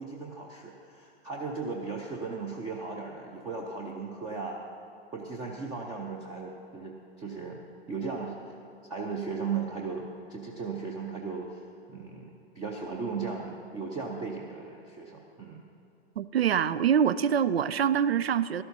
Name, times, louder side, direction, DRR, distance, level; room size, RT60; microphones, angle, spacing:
voice 1, 0.0-4.6 5.1-7.6 7.9-8.4 8.8-15.6, right 4 dB, 10° right, 0 dB, 0.6 m, -36 dB
voice 2, 16.2-18.6, right 8 dB, 70° right, 17 dB, 0.5 m, -25 dB
16.5 x 13.0 x 2.7 m, 2.8 s
figure-of-eight pair, 110°, 32 cm